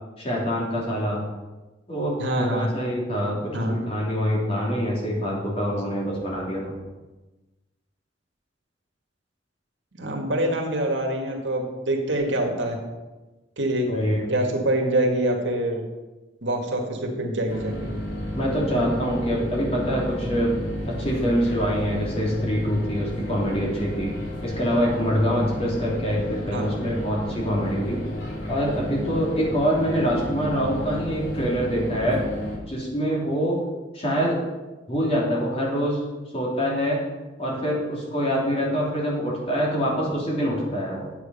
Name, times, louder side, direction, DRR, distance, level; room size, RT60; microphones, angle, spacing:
voice 1, 0.2-1.2 1.9-6.7 13.9-14.3 18.3-20.5 20.9-28.0 28.5-32.2 32.7-33.6 33.9-34.4 34.9-36.0 36.3-37.0 37.4-41.1, equal, 30° left, -4 dB, 3.1 m, -25 dB
voice 2, 2.2-2.7 3.5-3.7 9.9-12.8 13.6-13.9 14.3-15.8 16.4-17.9 26.5-26.7, right 1 dB, 80° right, 2 dB, 2.0 m, -25 dB
sound 1, 17.5-32.6, equal, 70° left, 2.9 m, -32 dB
9.7 x 8.1 x 5.5 m, 1.1 s
head